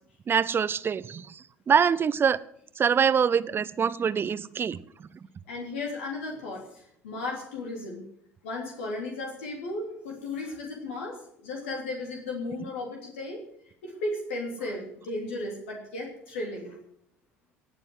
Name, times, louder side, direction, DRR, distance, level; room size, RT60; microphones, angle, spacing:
voice 1, 0.3-2.4 2.8-4.8, right 7 dB, 35° right, 17 dB, 0.8 m, -24 dB
voice 2, 5.5-8.0 8.4-13.4 13.8-16.8, left 2 dB, 75° left, 0 dB, 3.3 m, -35 dB
18.5 x 7.0 x 7.9 m, 0.69 s
figure-of-eight pair, 60°, 7 cm